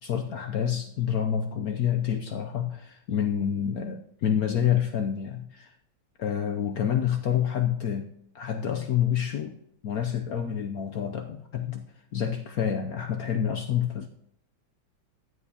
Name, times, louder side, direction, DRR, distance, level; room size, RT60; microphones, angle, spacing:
voice 1, 0.0-5.7 6.2-9.6 9.8-11.8 12.1-14.1, left 9 dB, 65° left, 5 dB, 0.9 m, -28 dB
15.5 x 10.0 x 2.8 m, 0.76 s
omnidirectional pair, 2.2 m